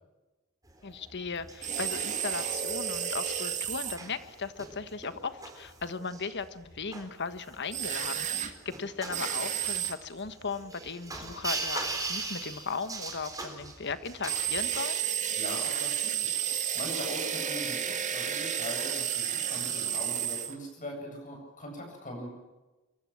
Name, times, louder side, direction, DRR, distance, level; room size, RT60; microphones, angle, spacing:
sound 1, 0.7-14.8, right 3 dB, 15° right, 4.2 m, -41 dB
voice 1, 0.8-15.0, left 4 dB, 50° left, 11 dB, 1.4 m, -37 dB
sound 2, 1.6-4.0 7.7-8.5 9.1-9.9 14.3-20.5, right 9 dB, 35° right, 2.0 m, -32 dB
voice 2, 15.4-22.3, left 1 dB, 35° left, 2 dB, 8.0 m, -41 dB
24.5 x 24.0 x 7.5 m, 1.2 s
head